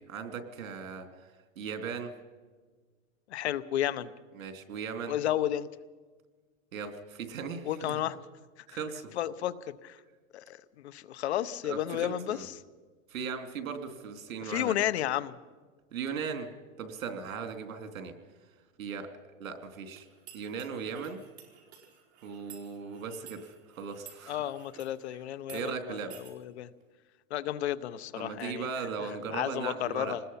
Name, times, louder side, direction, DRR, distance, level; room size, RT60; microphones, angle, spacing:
voice 1, 0.0-2.1 4.3-5.1 6.7-8.0 8.7-9.1 11.6-12.4 13.1-14.7 15.9-16.5 16.8-18.1 18.8-19.1 19.4-20.1 20.3-21.2 22.2-24.4 25.5-26.1 28.2-30.2, right 6 dB, 85° right, 7 dB, 3.1 m, -38 dB
voice 2, 3.3-4.1 5.1-5.7 7.6-8.2 9.2-10.0 10.3-12.6 14.4-15.3 24.3-26.7 27.3-28.7 29.3-30.2, left 12 dB, 55° left, 16 dB, 0.9 m, -32 dB
sound 1, 20.0-25.0 25.4-25.6 26.1-26.3, right 9 dB, 50° right, 4.2 m, -53 dB
26.5 x 20.5 x 5.7 m, 1.4 s
supercardioid pair, 175°, 40 cm